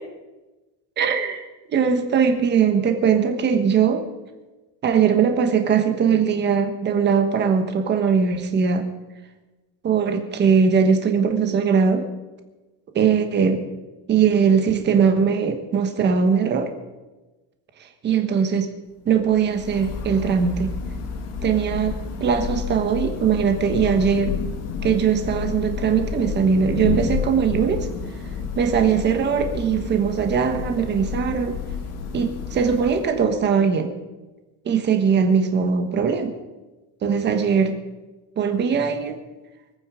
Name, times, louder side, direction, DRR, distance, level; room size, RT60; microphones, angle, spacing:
voice 1, 1.0-4.1 4.8-8.9 9.8-12.1 12.9-13.6 14.1-16.7 18.0-18.7 19.0-20.7 21.4-24.3 24.8-27.9 28.5-31.6 32.1-33.9 34.6-36.3 37.0-37.8 38.4-39.2, right 6 dB, 25° right, 7 dB, 1.4 m, -20 dB
Thunder / Rain, 19.2-33.5, left 6 dB, 40° left, 1.7 m, -30 dB
24.5 x 9.2 x 5.1 m, 1.1 s
cardioid pair, 180°, 39 cm